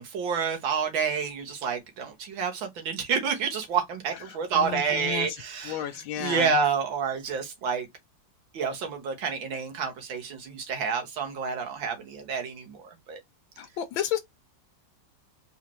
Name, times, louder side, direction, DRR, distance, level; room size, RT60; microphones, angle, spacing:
voice 1, 0.0-5.8 6.2-7.9 8.5-13.2, right 6 dB, 80° right, 1.9 m, -29 dB
voice 2, 4.1-6.5 13.6-14.2, left 10 dB, 85° left, 1.4 m, -33 dB
4.0 x 3.0 x 2.9 m
omnidirectional pair, 2.1 m